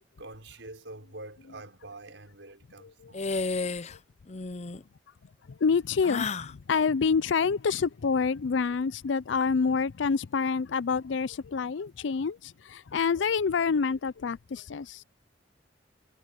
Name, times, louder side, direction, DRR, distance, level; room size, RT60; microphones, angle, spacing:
voice 1, 0.2-3.3, right 2 dB, 85° right, 4.9 m, -46 dB
sound 1, 3.1-4.0 4.3-4.8 6.0-6.5, left 4 dB, 40° left, 0.7 m, -32 dB
voice 2, 5.5-15.0, left 5 dB, 85° left, 0.5 m, -27 dB
head